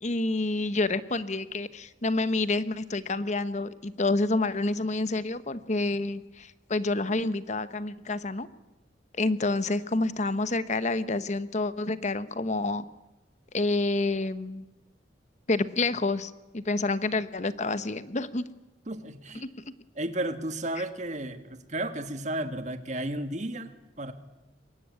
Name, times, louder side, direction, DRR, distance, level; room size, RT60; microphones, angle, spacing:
voice 1, 0.0-8.5 9.2-12.8 13.5-14.6 15.5-18.4 19.4-19.5, left 2 dB, 40° left, 14 dB, 1.0 m, -28 dB
voice 2, 18.9-19.4 20.0-23.7 24.0-24.1, right 1 dB, 40° right, 9 dB, 1.8 m, -33 dB
23.5 x 20.5 x 9.7 m, 1.0 s
head